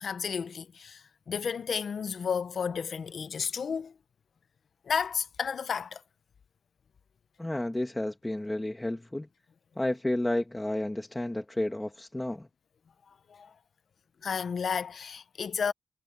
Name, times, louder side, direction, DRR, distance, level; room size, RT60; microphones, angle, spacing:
voice 1, 0.0-3.9 4.8-6.0 13.3-13.5 14.2-15.7, left 6 dB, 55° left, 0.7 m, -32 dB
voice 2, 7.4-9.3 9.8-12.5, left 1 dB, 10° left, 1.5 m, -31 dB
wide cardioid pair, 175°, 0 cm